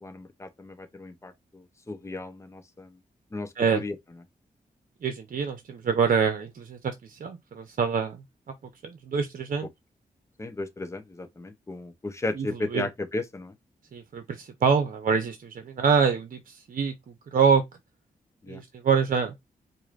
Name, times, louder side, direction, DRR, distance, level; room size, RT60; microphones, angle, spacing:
voice 1, 0.0-3.0 3.3-3.9 10.4-13.5 18.4-18.6, left 2 dB, 20° left, 0.7 m, -35 dB
voice 2, 5.0-8.2 8.8-9.7 12.4-12.5 12.7-12.9 13.9-16.9 17.3-17.6 18.5-19.3, right 6 dB, 65° right, 0.7 m, -25 dB
4.7 x 2.6 x 2.5 m
wide cardioid pair, 110°, 15 cm